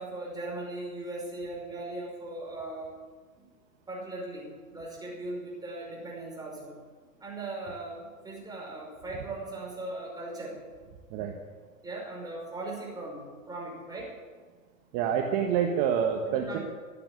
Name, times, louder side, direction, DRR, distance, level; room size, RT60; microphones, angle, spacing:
voice 1, 0.0-2.9 3.4-3.5 3.9-6.8 7.2-10.6 11.8-14.2 16.2-16.6, right 2 dB, 10° right, -3 dB, 5.4 m, -39 dB
voice 2, 14.9-16.6, right 8 dB, 40° right, 2 dB, 1.5 m, -27 dB
14.0 x 8.6 x 8.5 m, 1.5 s
hypercardioid pair, 120°, 42 cm